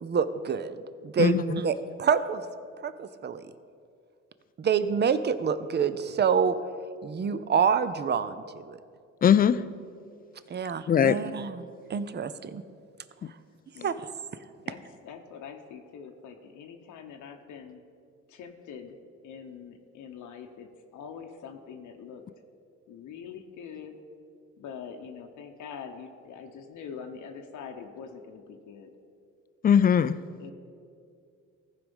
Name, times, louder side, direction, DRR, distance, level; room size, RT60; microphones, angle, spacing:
voice 1, 0.0-2.4 2.8-3.5 4.6-6.6 7.0-8.8 10.5-12.6 13.8-14.1, right 6 dB, 35° right, 13 dB, 0.6 m, -27 dB
voice 2, 1.2-1.6 9.2-9.7 10.9-11.2 13.2-13.3 29.6-30.2, left 8 dB, 30° left, 15 dB, 0.4 m, -21 dB
voice 3, 15.0-17.8 18.3-19.0 19.2-22.2 22.9-24.0 24.6-28.9 29.8-30.1 30.4-30.5, left 6 dB, 80° left, 4 dB, 0.9 m, -44 dB
15.0 x 5.0 x 5.4 m, 2.3 s
cardioid pair, 90°, 30 cm